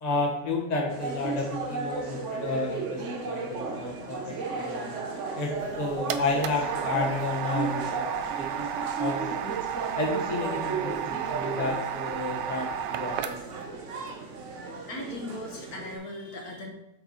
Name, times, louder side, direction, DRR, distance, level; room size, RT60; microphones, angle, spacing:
voice 1, 0.0-4.9 5.3-8.0 8.4-8.7 9.0-9.5 10.0-13.4, left 3 dB, 25° left, 0 dB, 1.0 m, -31 dB
sound 1, 0.9-16.0, right 4 dB, 50° right, 0.9 m, -35 dB
sound 2, 5.5-13.7, right 10 dB, 75° right, 1.0 m, -33 dB
voice 2, 14.9-16.7, left 1 dB, 50° left, 2 dB, 1.6 m, -38 dB
8.0 x 4.7 x 4.0 m, 0.85 s
omnidirectional pair, 2.3 m